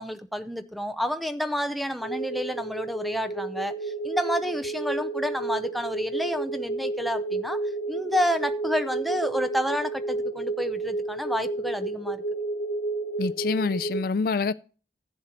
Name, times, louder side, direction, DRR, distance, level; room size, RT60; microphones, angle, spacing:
voice 1, 0.0-7.6 7.9-12.2, equal, ahead, 0.5 m, -29 dB
sound 1, 2.0-14.0, right 2 dB, 70° left, 0.8 m, -31 dB
voice 2, 13.2-14.5, left 4 dB, 55° left, 0.3 m, -26 dB
15.0 x 7.4 x 2.9 m
head